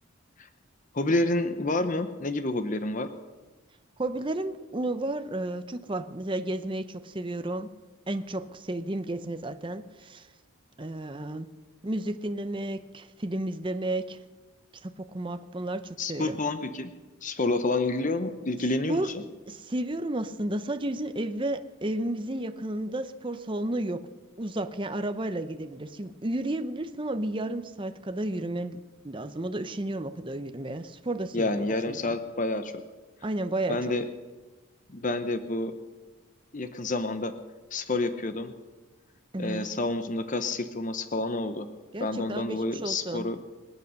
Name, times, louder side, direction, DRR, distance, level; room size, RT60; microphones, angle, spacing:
voice 1, 0.9-3.1 16.0-16.9 17.2-19.2 31.3-32.7 33.7-34.0 34.9-35.7 36.5-37.3 37.7-38.5 39.4-41.7 42.0-43.4, left 2 dB, 35° left, 9 dB, 0.8 m, -29 dB
voice 2, 4.0-7.7 8.1-10.3 10.8-11.5 11.8-14.2 14.8-16.4 18.9-19.1 19.5-24.0 24.4-28.8 29.0-32.1 33.2-33.8 39.3-39.7 41.9-43.3, right 1 dB, 20° right, 9 dB, 0.6 m, -32 dB
25.0 x 8.5 x 6.5 m, 1.2 s
head